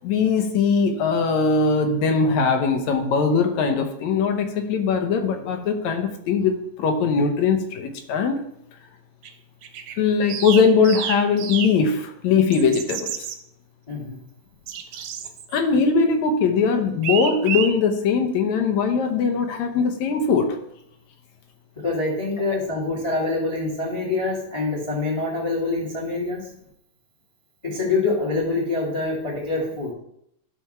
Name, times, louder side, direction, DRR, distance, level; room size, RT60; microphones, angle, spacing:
voice 1, 0.0-8.4 10.0-13.3 15.5-20.6, left 5 dB, 70° left, 5 dB, 2.0 m, -21 dB
sound 1, 9.2-9.3 9.6-9.9 10.3-11.7 12.5-13.3 14.7-15.6 17.0-17.7, right 9 dB, 70° right, 1.7 m, -29 dB
voice 2, 13.9-14.2 21.8-26.4 27.6-29.9, left 3 dB, 15° left, -2 dB, 1.3 m, -25 dB
11.5 x 4.5 x 5.7 m, 0.74 s
omnidirectional pair, 3.9 m